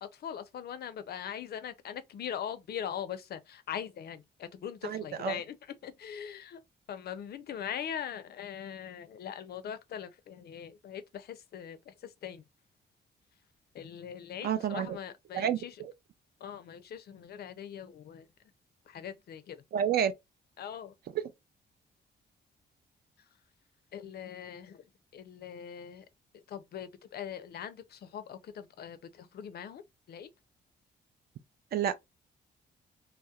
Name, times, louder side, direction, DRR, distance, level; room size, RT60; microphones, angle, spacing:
voice 1, 0.0-6.6 6.9-12.4 13.7-15.8 16.4-18.3 18.9-19.6 20.6-20.9 23.9-24.8 25.1-26.1 26.3-29.8 30.1-30.3, left 9 dB, 60° left, 0.4 m, -41 dB
voice 2, 4.8-5.4 14.4-15.0 15.3-15.9 19.7-20.1 31.7-31.9, right 9 dB, 60° right, 0.4 m, -29 dB
2.7 x 2.0 x 2.3 m
cardioid pair, 115°, 19 cm